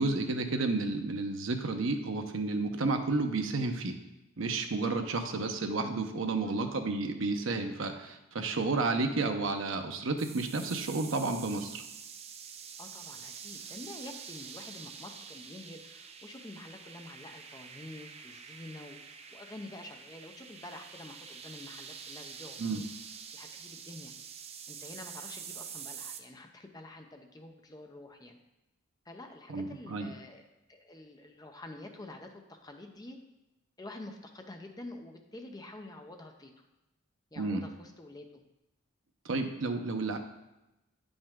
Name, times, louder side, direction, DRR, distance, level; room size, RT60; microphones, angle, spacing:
voice 1, 0.0-3.9 4.4-11.8 22.6-22.8 29.5-30.1 37.4-37.6 39.2-40.2, right 3 dB, 65° right, 5 dB, 0.7 m, -31 dB
sound 1, 10.2-26.2, right 7 dB, 30° right, 0.4 m, -46 dB
voice 2, 12.8-19.0 19.3-22.8 23.3-24.1 24.7-28.4 29.0-33.2 33.8-36.5 37.3-38.4, left 1 dB, 20° left, 4 dB, 0.6 m, -48 dB
8.7 x 5.3 x 3.6 m, 0.97 s
head